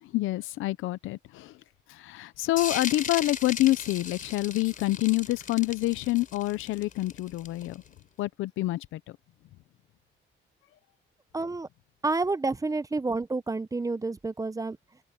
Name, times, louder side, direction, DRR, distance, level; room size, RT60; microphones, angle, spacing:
voice 1, 0.0-1.6 1.9-7.8 8.2-9.2, left 17 dB, 90° left, 0.7 m, -27 dB
sound 1, 2.6-7.9, left 6 dB, 45° left, 3.8 m, -37 dB
voice 2, 11.3-11.7 12.0-14.8, right 3 dB, 15° right, 0.7 m, -29 dB
open air
cardioid pair, 90°, 20 cm